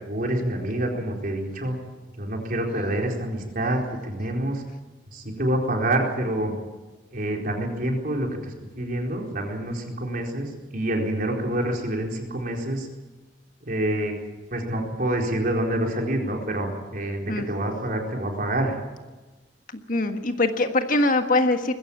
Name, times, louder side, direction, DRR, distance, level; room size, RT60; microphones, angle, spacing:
voice 1, 0.0-1.8 2.2-4.6 5.1-6.5 7.1-8.3 8.8-12.9 13.6-14.1 14.5-18.8, right 1 dB, 50° right, 1 dB, 4.3 m, -27 dB
voice 2, 19.9-21.7, left 2 dB, 50° left, 6 dB, 1.5 m, -22 dB
21.5 x 16.0 x 9.0 m, 1.2 s
head